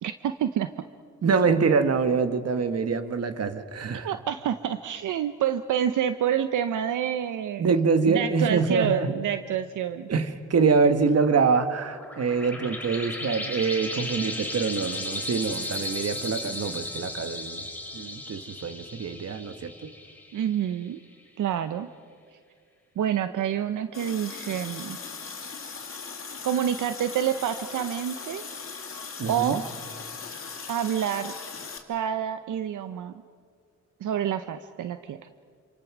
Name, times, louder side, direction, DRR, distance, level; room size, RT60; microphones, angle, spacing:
voice 1, 0.0-0.7 4.0-7.7 8.1-10.1 20.3-21.0 21.4-21.9 23.0-25.0 26.4-28.4 29.3-29.6 30.7-31.3 31.9-33.1 34.0-35.3, right 9 dB, 85° right, 10 dB, 0.8 m, -28 dB
voice 2, 1.2-4.1 7.6-9.1 10.1-17.6 17.9-19.9 29.2-29.6, right 5 dB, 55° right, 10 dB, 1.5 m, -25 dB
sound 1, 11.7-20.8, left 1 dB, 5° left, 3.0 m, -35 dB
Water tap faucet, 23.9-31.8, left 5 dB, 45° left, 2.9 m, -39 dB
27.5 x 27.0 x 6.1 m, 2.2 s
cardioid pair, 95°, 30 cm